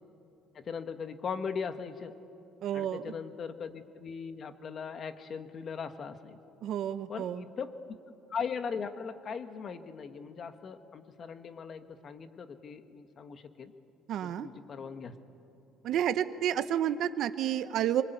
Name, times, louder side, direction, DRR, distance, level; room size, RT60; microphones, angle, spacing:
voice 1, 0.5-2.2 2.7-6.4 7.1-7.7 8.3-13.7 14.2-15.1, left 6 dB, 35° left, 9 dB, 1.4 m, -39 dB
voice 2, 2.6-3.1 6.6-7.4 14.1-14.5 15.8-18.0, right 10 dB, 55° right, 11 dB, 0.9 m, -30 dB
25.0 x 24.0 x 9.3 m, 2.7 s
cardioid pair, 155°, 0 cm